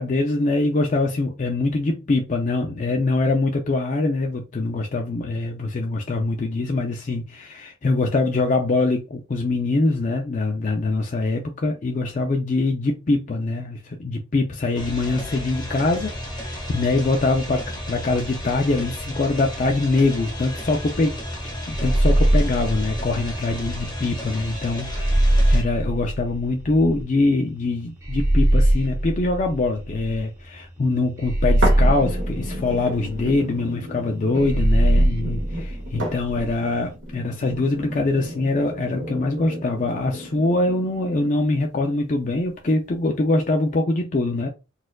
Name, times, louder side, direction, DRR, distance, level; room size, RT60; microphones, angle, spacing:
voice 1, 0.0-21.2 21.7-44.5, left 2 dB, 40° left, 0.4 m, -23 dB
sound 1, 14.8-25.6, left 1 dB, 20° left, 0.9 m, -33 dB
sound 2, 21.7-23.8 24.9-27.0 28.0-30.4 31.2-33.4 34.4-36.5, right 1 dB, 15° right, 0.8 m, -21 dB
sound 3, 31.6-41.6 42.2-42.3, equal, 75° right, 1.5 m, -33 dB
4.2 x 2.4 x 2.2 m
head